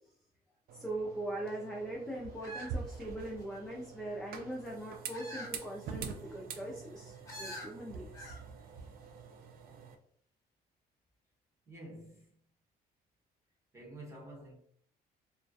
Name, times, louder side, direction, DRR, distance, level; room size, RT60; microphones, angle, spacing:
voice 1, 0.7-8.4, right 1 dB, 5° left, 0.4 m, -41 dB
sound 1, 0.7-10.0, right 5 dB, 60° right, 0.4 m, -46 dB
sound 2, 2.4-3.6 5.1-5.6 6.0-6.1 7.3-7.7 8.1-8.4 8.7-8.8, equal, 20° left, 0.8 m, -45 dB
voice 2, 11.7-12.3 13.7-14.5, right 1 dB, 15° right, 0.9 m, -49 dB
2.3 x 2.1 x 2.6 m
cardioid pair, 110°, 17 cm